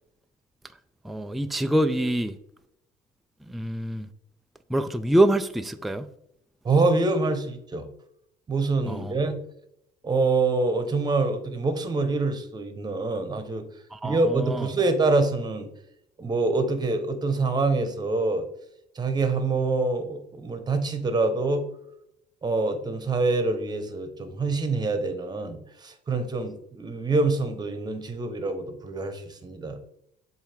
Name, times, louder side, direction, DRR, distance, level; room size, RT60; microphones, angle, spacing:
voice 1, 1.0-2.4 3.5-4.1 4.7-6.1 8.9-9.1 13.9-14.7, right 1 dB, ahead, 0.3 m, -25 dB
voice 2, 6.6-7.9 8.5-9.4 10.0-13.6 14.0-15.7 16.2-18.4 19.0-21.6 22.4-29.8, right 3 dB, 25° right, 1.0 m, -25 dB
7.3 x 2.8 x 5.1 m
cardioid pair, 110°, 17 cm